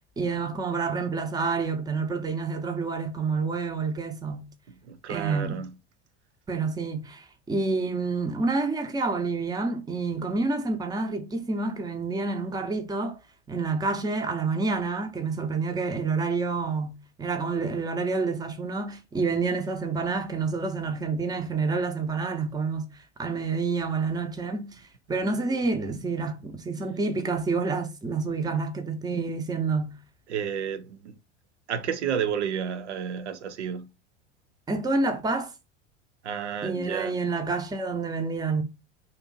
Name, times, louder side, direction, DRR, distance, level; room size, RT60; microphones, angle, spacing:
voice 1, 0.2-4.5 5.1-5.6 6.5-13.2 13.5-24.7 25.1-30.0 34.7-35.5 36.6-38.6, right 4 dB, 10° right, 0.6 m, -28 dB
voice 2, 4.9-5.7 30.3-31.1 31.7-33.9 36.2-37.2, right 8 dB, 90° right, 0.5 m, -31 dB
2.6 x 2.5 x 3.7 m
hypercardioid pair, 85°, 33 cm